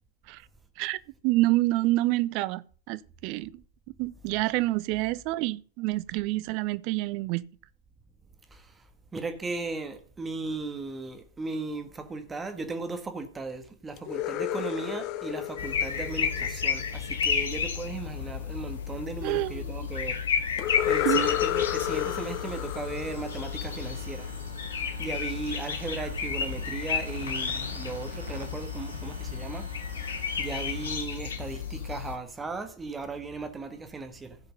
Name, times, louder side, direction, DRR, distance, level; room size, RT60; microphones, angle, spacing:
voice 1, 1.2-3.6 4.0-7.4 19.2-19.9 21.0-21.3, right 19 dB, 45° right, 0.5 m, -27 dB
voice 2, 8.5-8.9 9.1-20.2 20.8-24.3 25.0-34.4, right 3 dB, 15° right, 1.7 m, -37 dB
sound 1, 14.0-16.9 20.6-24.3, left 14 dB, 40° left, 0.5 m, -31 dB
sound 2, 15.6-32.2, left 6 dB, 65° left, 1.5 m, -32 dB
sound 3, 20.7-31.0, right 3 dB, 75° right, 2.6 m, -44 dB
15.5 x 5.2 x 5.3 m
figure-of-eight pair, 90°, 0 cm